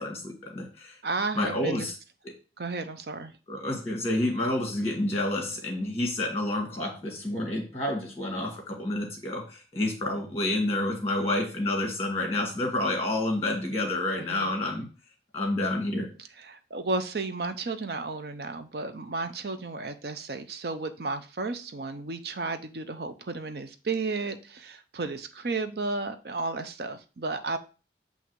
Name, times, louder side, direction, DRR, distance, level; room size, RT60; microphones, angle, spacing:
voice 1, 0.0-1.0 1.3-1.9 2.2-2.3 3.5-14.9 15.3-16.1, left 1 dB, 15° left, 0 dB, 1.5 m, -29 dB
voice 2, 1.0-1.9 2.6-3.3 14.2-14.5 16.4-27.6, right 3 dB, 60° right, 9 dB, 0.6 m, -33 dB
8.0 x 2.7 x 4.6 m, 0.35 s
head